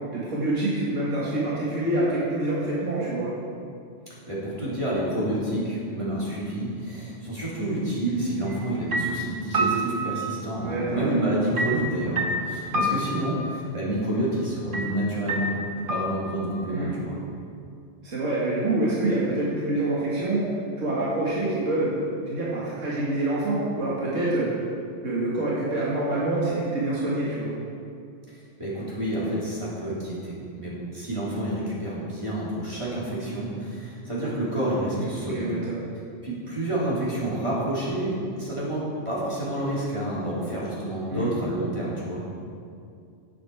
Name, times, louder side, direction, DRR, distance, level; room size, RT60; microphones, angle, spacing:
voice 1, 0.1-3.3 10.6-11.2 16.7-17.0 18.0-20.5 20.8-21.9 22.3-24.5 25.0-27.5 34.9-35.8 41.1-41.3, right 2 dB, 90° right, -7 dB, 2.1 m, -26 dB
voice 2, 4.3-17.1 28.3-35.6 36.2-42.2, right 1 dB, 25° right, -8 dB, 3.2 m, -29 dB
sound 1, 8.5-8.7 8.9-10.8 11.6-13.6 14.7-14.9 15.3-16.6, right 1 dB, 45° right, 1.2 m, -28 dB
10.5 x 8.8 x 4.7 m, 2.4 s
omnidirectional pair, 1.3 m